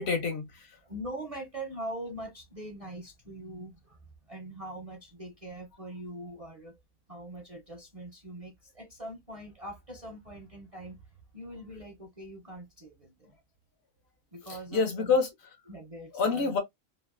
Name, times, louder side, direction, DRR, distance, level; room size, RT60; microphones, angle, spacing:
voice 1, 0.0-0.8 14.7-15.3 16.1-16.6, left 5 dB, 55° left, 0.9 m, -27 dB
voice 2, 0.8-4.0 4.3-6.8 7.1-11.1 11.3-13.4 14.3-15.1 15.7-16.5, right 1 dB, 35° right, 0.6 m, -42 dB
3.1 x 2.4 x 2.4 m
omnidirectional pair, 1.4 m